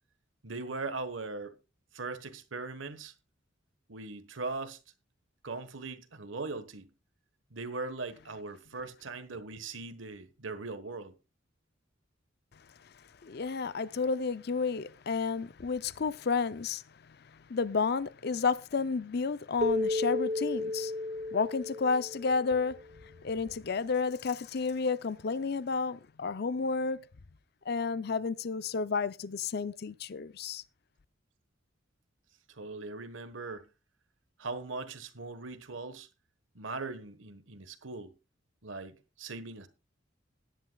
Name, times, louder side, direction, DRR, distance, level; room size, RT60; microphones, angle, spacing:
voice 1, 0.4-1.6 1.9-3.1 3.9-4.8 5.4-6.9 7.5-11.2 23.4-23.5 32.5-33.7 34.4-36.1 36.5-38.1 38.6-39.7, right 3 dB, 80° right, 1.3 m, -40 dB
voice 2, 13.2-20.9 21.3-27.1 27.7-30.6, left 4 dB, 55° left, 0.5 m, -31 dB
Keyboard (musical), 19.6-22.8, left 2 dB, 35° right, 0.6 m, -33 dB
17.0 x 10.5 x 2.3 m
head